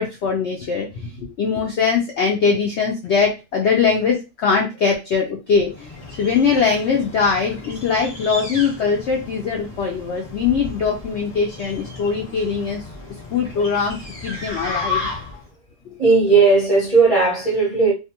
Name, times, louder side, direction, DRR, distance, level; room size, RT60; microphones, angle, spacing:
voice 1, 0.0-5.9 6.2-12.8 13.3-14.0 14.2-15.1 15.9-16.0, left 5 dB, 80° left, 0.6 m, -21 dB
sound 1, 5.7-15.5, left 3 dB, 30° left, 1.0 m, -33 dB
voice 2, 16.0-17.9, right 4 dB, 40° right, 0.5 m, -16 dB
2.5 x 2.4 x 2.8 m
omnidirectional pair, 1.7 m